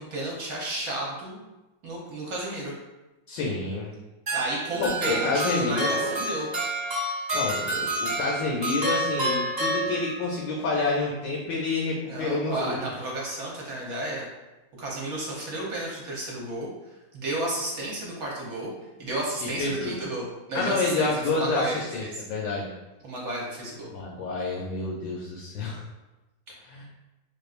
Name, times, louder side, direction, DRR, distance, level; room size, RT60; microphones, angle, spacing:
voice 1, 0.0-1.4 1.8-2.7 4.3-6.5 12.1-14.3 14.8-16.7 17.1-18.7 19.0-22.2 23.0-23.9, right 1 dB, 60° right, -3 dB, 1.1 m, -32 dB
voice 2, 3.3-3.9 4.8-6.1 7.3-12.8 19.6-19.9 20.5-22.7 23.9-25.8 26.6-26.8, left 3 dB, 75° left, -2 dB, 1.2 m, -28 dB
sound 1, 4.3-10.4, right 1 dB, 35° right, 1.2 m, -29 dB
4.3 x 2.5 x 2.4 m, 1.0 s
omnidirectional pair, 2.1 m